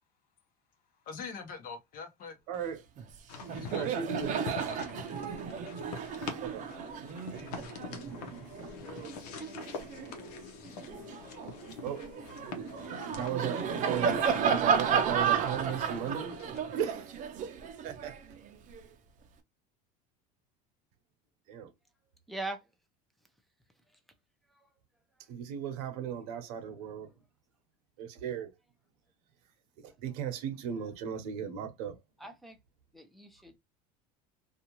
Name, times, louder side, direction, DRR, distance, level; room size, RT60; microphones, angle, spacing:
voice 1, 1.1-2.4 3.4-3.8 4.6-4.8, left 5 dB, 45° left, 1.0 m, -43 dB
voice 2, 2.5-2.8 3.7-4.4 6.4-6.7 8.6-9.2 11.8-12.1 13.1-16.4 16.7-17.2 17.8-18.2 21.5-21.7 25.3-27.1 28.0-28.5 29.8-32.0, right 8 dB, 75° right, 0.9 m, -36 dB
Laughter, 3.0-3.2 3.4-10.1 10.6-18.8, right 7 dB, 40° right, 0.6 m, -33 dB
sound 1, 3.3-16.6, left 5 dB, 85° left, 0.8 m, -45 dB
voice 3, 22.3-22.6 24.5-24.7 30.1-30.2 30.8-30.9 32.2-32.6 32.9-33.6, right 2 dB, ahead, 0.6 m, -41 dB
2.6 x 2.3 x 2.9 m
supercardioid pair, 115°, 20 cm